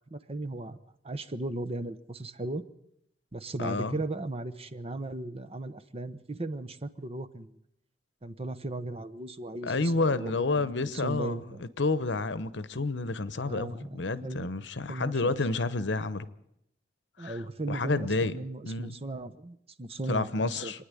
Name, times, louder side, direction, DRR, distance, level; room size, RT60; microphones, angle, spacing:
voice 1, 0.1-0.8 1.0-2.6 3.3-7.6 8.2-11.6 13.5-14.5 14.9-15.3 17.2-20.8, right 2 dB, 35° right, 0.9 m, -37 dB
voice 2, 3.6-4.0 9.6-16.3 17.2-17.4 17.7-18.4 18.6-19.0 20.1-20.8, left 3 dB, 70° left, 1.0 m, -30 dB
26.5 x 9.8 x 9.8 m
head